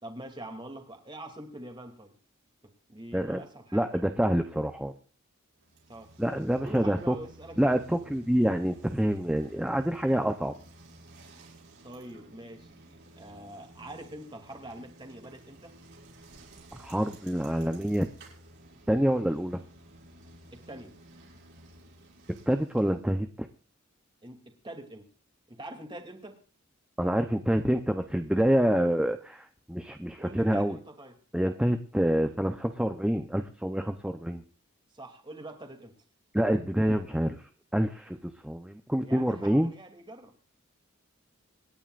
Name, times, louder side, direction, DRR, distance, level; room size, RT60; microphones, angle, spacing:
voice 1, 0.0-2.1 2.9-4.0 5.9-6.1 6.6-7.8 11.8-15.7 20.5-20.9 24.2-25.1 25.5-26.4 30.2-31.2 34.9-35.9 39.0-40.4, right 1 dB, 25° right, 4 dB, 2.7 m, -44 dB
voice 2, 3.7-4.9 6.2-7.2 7.6-10.5 16.7-18.1 18.9-19.6 22.5-23.5 27.0-30.8 31.3-34.4 36.3-37.4 37.7-39.7, equal, 5° right, 6 dB, 0.7 m, -27 dB
Bicycle, 5.5-23.1, right 1 dB, 60° right, 7.0 m, -53 dB
26.5 x 11.0 x 2.5 m, 0.37 s
head